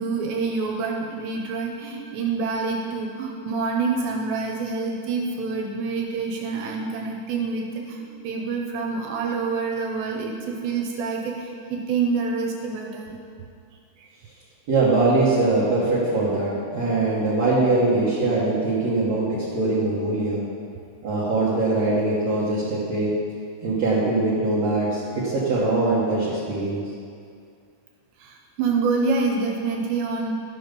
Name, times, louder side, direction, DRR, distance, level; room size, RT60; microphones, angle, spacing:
voice 1, 0.0-13.2 14.0-14.1 28.2-30.3, right 4 dB, 80° right, 1 dB, 3.0 m, -27 dB
voice 2, 14.7-20.4 21.0-23.1 23.6-26.8, right 2 dB, 65° right, -8 dB, 1.7 m, -22 dB
13.0 x 6.3 x 5.2 m, 2.3 s
omnidirectional pair, 5.1 m